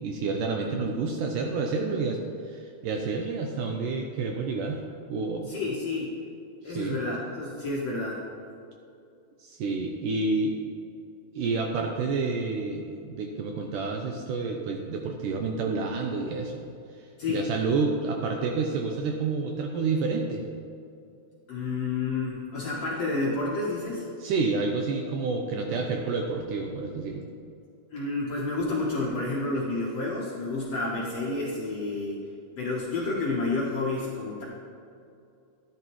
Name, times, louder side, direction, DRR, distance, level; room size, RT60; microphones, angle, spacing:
voice 1, 0.0-4.8 5.1-5.5 6.7-7.0 9.4-10.6 11.4-16.6 17.3-20.4 24.2-27.3, right 4 dB, 80° right, 2 dB, 2.0 m, -29 dB
voice 2, 5.5-6.1 6.6-8.2 17.2-17.4 21.5-24.1 27.9-32.2 32.6-34.4, left 3 dB, 65° left, -4 dB, 1.7 m, -30 dB
13.0 x 10.5 x 3.1 m, 2.6 s
omnidirectional pair, 4.3 m